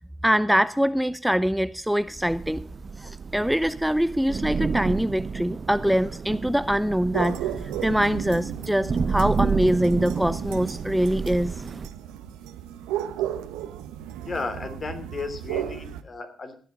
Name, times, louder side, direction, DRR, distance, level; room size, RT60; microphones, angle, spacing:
voice 1, 0.2-2.7 3.0-7.5 7.8-11.5, equal, 5° right, 16 dB, 0.5 m, -24 dB
Thunder / Rain, 2.2-11.9, right 5 dB, 45° right, 0.9 m, -31 dB
sound 1, 7.1-16.0, right 11 dB, 80° right, 1.0 m, -34 dB
voice 2, 14.2-16.5, left 4 dB, 45° left, 7 dB, 3.0 m, -34 dB
16.5 x 9.6 x 5.2 m, 0.43 s
hypercardioid pair, 45°, 0 cm